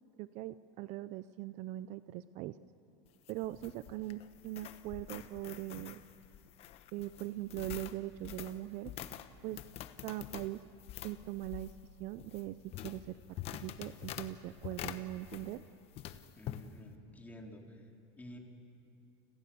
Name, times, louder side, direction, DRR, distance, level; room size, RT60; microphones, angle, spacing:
voice 1, 0.2-2.6 3.3-6.0 6.9-8.9 9.4-9.6 10.0-10.6 11.0-11.7 12.0-13.2 13.5-15.6, right 15 dB, 50° right, 14 dB, 0.6 m, -41 dB
sound 1, 3.1-15.7 16.0-16.6, left 11 dB, 40° left, 1.2 m, -46 dB
voice 2, 16.4-17.9 18.2-18.4, left 1 dB, 10° left, 1 dB, 3.5 m, -51 dB
30.0 x 26.0 x 7.0 m, 2.6 s
supercardioid pair, 140°, 15 cm